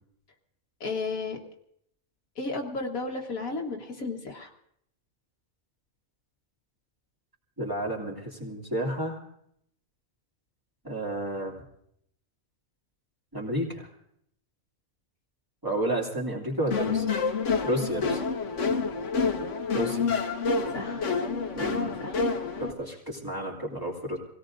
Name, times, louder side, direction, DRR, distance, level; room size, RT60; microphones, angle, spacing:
voice 1, 0.8-1.4 2.4-4.5 16.7-16.9 20.7-21.0 22.0-22.1, left 3 dB, 85° left, 1 dB, 1.9 m, -33 dB
voice 2, 7.6-9.2 10.8-11.5 13.3-13.9 15.6-17.0 17.6-18.2 19.7-20.1 21.5-22.0 22.6-24.2, right 1 dB, 15° right, -3 dB, 2.8 m, -31 dB
sound 1, 16.7-22.7, left 4 dB, 65° left, 1.4 m, -28 dB
26.0 x 17.0 x 2.6 m, 0.73 s
omnidirectional pair, 1.4 m